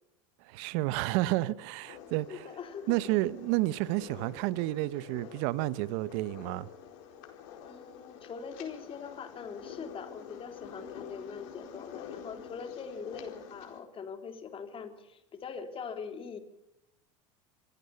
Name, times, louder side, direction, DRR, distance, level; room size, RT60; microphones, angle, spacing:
voice 1, 0.4-2.5 2.9-6.7, right 18 dB, 65° right, 1.1 m, -30 dB
sound 1, 1.8-13.8, left 8 dB, 65° left, 4.5 m, -48 dB
voice 2, 2.3-3.0 7.6-16.4, left 6 dB, 35° left, 3.3 m, -42 dB
24.5 x 15.5 x 7.0 m
hypercardioid pair, 100°, 16 cm